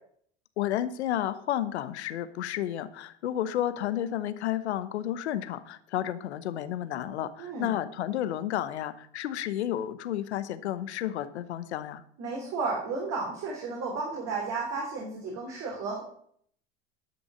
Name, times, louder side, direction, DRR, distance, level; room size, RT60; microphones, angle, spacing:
voice 1, 0.6-12.0, left 11 dB, 80° left, 14 dB, 0.9 m, -31 dB
voice 2, 7.4-7.7 12.2-16.0, right 4 dB, 50° right, -2 dB, 3.2 m, -33 dB
11.0 x 6.3 x 6.1 m, 0.64 s
hypercardioid pair, 85°, 33 cm